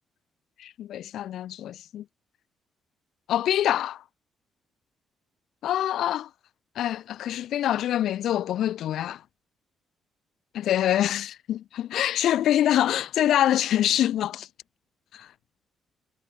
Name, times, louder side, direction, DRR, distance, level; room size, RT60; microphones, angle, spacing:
voice 1, 0.6-2.1 3.3-4.0 5.6-6.3 6.7-9.2 10.5-14.5 15.1-15.3, left 12 dB, 75° left, 7.8 m, -25 dB
cardioid pair, 90°, 0 cm